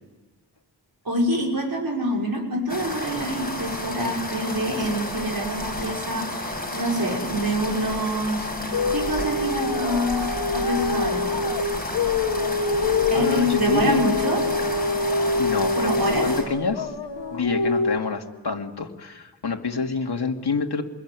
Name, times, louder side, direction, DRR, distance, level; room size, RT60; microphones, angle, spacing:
voice 1, 1.0-11.4 13.1-14.4 15.7-16.3, equal, 55° right, 0 dB, 6.3 m, -26 dB
sound 1, 2.7-16.4, left 1 dB, 20° left, 7.6 m, -31 dB
sound 2, 8.7-18.0, left 3 dB, 85° left, 1.7 m, -25 dB
voice 2, 13.1-14.0 15.4-16.9 17.3-20.8, left 4 dB, 65° left, 2 dB, 2.6 m, -27 dB
27.0 x 22.0 x 9.8 m, 1.2 s
wide cardioid pair, 85°, 42 cm